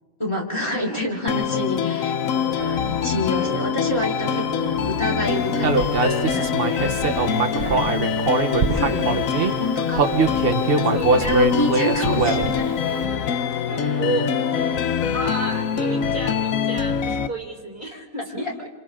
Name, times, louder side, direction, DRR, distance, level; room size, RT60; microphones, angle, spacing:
voice 1, 0.2-6.8 7.6-8.1 8.7-9.2 9.5-10.6 11.1-12.7 18.4-18.5, equal, 20° left, -3 dB, 3.9 m, -28 dB
sound 1, 1.3-17.3, left 8 dB, 70° left, 1.2 m, -24 dB
Piano, 2.5-16.3, right 2 dB, 65° right, 1.7 m, -36 dB
Human voice, 5.6-9.5 9.9-12.7, right 4 dB, 45° right, 1.1 m, -22 dB
voice 2, 10.7-11.1 14.0-14.3 15.1-18.7, right 1 dB, 10° right, 0 dB, 3.3 m, -31 dB
28.5 x 27.5 x 3.8 m, 1.5 s
omnidirectional pair, 1.5 m